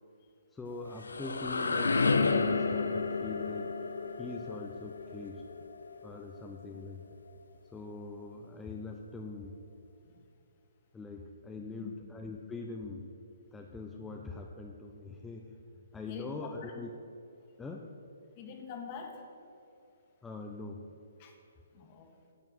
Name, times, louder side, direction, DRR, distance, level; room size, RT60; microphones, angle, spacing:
voice 1, 0.5-3.7 4.2-5.4 6.0-7.0 7.7-9.6 10.9-13.1 13.5-15.6 15.9-17.0 17.6-17.9 20.2-20.9, left 3 dB, 10° left, 1 dB, 0.6 m, -43 dB
sound 1, 0.7-6.5, left 4 dB, 85° left, 0.7 m, -31 dB
voice 2, 11.6-11.9 16.1-16.4 18.4-19.3 21.2-21.4 21.7-22.1, left 5 dB, 35° left, 3 dB, 1.7 m, -45 dB
10.5 x 7.3 x 6.2 m, 2.8 s
hypercardioid pair, 140°, 0 cm